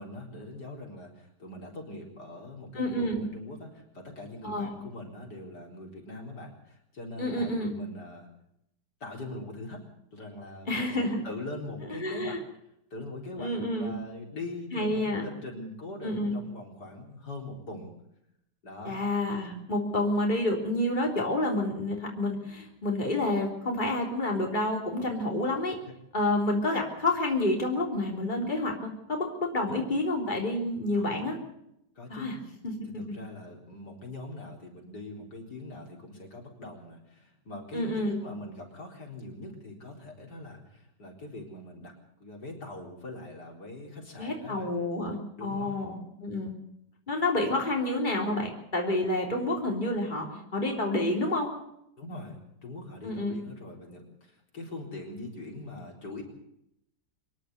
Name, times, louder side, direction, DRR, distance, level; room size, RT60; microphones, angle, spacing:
voice 1, 0.0-8.3 9.0-9.8 10.1-12.4 12.9-17.9 18.6-19.0 25.9-26.0 29.7-29.9 30.9-31.3 31.9-32.3 32.8-41.9 42.2-44.7 45.4-45.8 52.0-56.2, left 2 dB, 75° left, 0 dB, 4.7 m, -42 dB
voice 2, 2.7-3.3 4.4-4.7 7.2-7.7 10.7-11.2 12.0-12.4 13.4-14.0 14.7-15.2 16.0-16.4 18.8-25.8 26.1-31.4 32.1-32.4 32.6-33.0 37.7-38.2 44.2-46.5 47.1-51.5 53.0-53.4, left 1 dB, 25° left, 0 dB, 3.7 m, -29 dB
25.5 x 11.0 x 9.3 m, 0.79 s
omnidirectional pair, 1.8 m